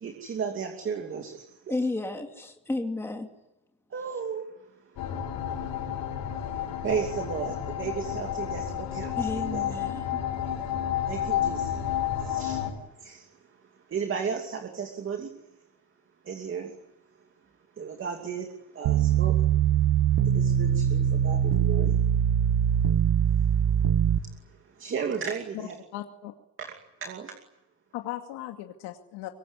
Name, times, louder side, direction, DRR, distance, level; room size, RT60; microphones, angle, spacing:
voice 1, 0.0-1.7 3.9-4.5 5.9-6.5 6.8-9.7 11.1-11.8 12.1-12.6 12.9-13.3 13.9-15.3 16.2-16.7 17.8-19.4 20.2-22.5 22.9-25.7 26.6-26.7 27.0-27.3, right 6 dB, 30° right, 4 dB, 2.6 m, -35 dB
voice 2, 1.7-3.3 9.2-10.2, left 2 dB, 5° left, 3 dB, 2.7 m, -32 dB
sound 1, 5.0-12.7, left 10 dB, 60° left, 7.0 m, -31 dB
sound 2, 18.8-24.2, right 9 dB, 55° right, 1.4 m, -22 dB
voice 3, 25.5-26.3 27.9-29.3, left 13 dB, 80° left, 4 dB, 2.5 m, -38 dB
25.0 x 22.5 x 9.8 m, 0.92 s
cardioid pair, 175°, 41 cm